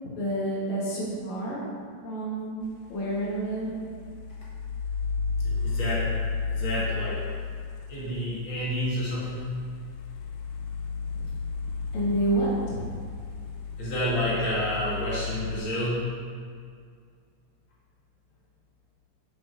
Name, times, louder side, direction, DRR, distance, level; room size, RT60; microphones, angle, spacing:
voice 1, 0.2-1.6 2.0-3.8 11.9-12.8, right 1 dB, 60° left, -6 dB, 2.2 m, -29 dB
sound 1, 2.7-15.6, left 4 dB, 90° left, 2.4 m, -33 dB
voice 2, 5.4-6.1 6.5-7.2 7.9-9.5 13.8-16.0, equal, 45° left, -8 dB, 1.9 m, -29 dB
8.4 x 5.9 x 2.6 m, 2.1 s
omnidirectional pair, 4.2 m